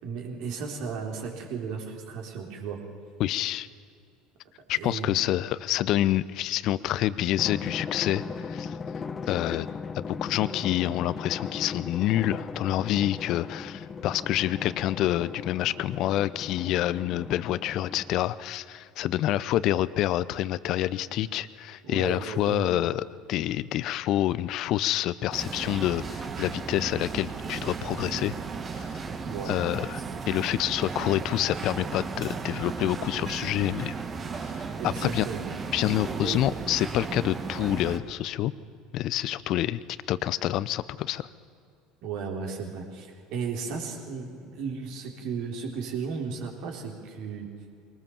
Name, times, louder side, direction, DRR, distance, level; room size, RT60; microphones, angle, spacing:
voice 1, 0.0-2.8 4.7-5.2 21.8-22.7 29.3-29.6 34.8-35.5 36.2-36.4 42.0-47.5, right 5 dB, 60° right, 2 dB, 3.8 m, -35 dB
voice 2, 3.2-3.7 4.7-8.8 9.3-9.7 9.9-28.3 28.7-28.9 29.5-33.9 34.5-35.3 35.7-38.5 38.9-39.8 40.1-41.3, left 13 dB, 55° left, 17 dB, 0.7 m, -27 dB
Drum, 7.4-18.4, left 5 dB, 30° left, 1.0 m, -38 dB
sound 1, 25.3-38.0, right 5 dB, 30° right, 1.9 m, -35 dB
23.5 x 19.0 x 7.1 m, 2.5 s
hypercardioid pair, 70°, 0 cm